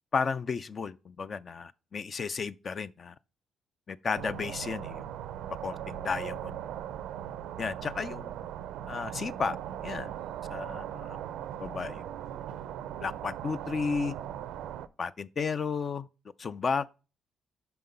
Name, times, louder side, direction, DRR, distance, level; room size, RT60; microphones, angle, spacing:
voice 1, 0.1-3.2 3.9-5.1 5.6-6.6 7.6-8.3 8.9-9.6 9.8-10.1 10.5-11.2 11.6-12.0 13.0-14.1 15.0-16.1 16.4-16.9, left 5 dB, 40° left, 0.4 m, -33 dB
sound 1, 4.2-14.9, right 10 dB, 85° right, 0.4 m, -39 dB
5.9 x 5.6 x 5.3 m
cardioid pair, 90°, 0 cm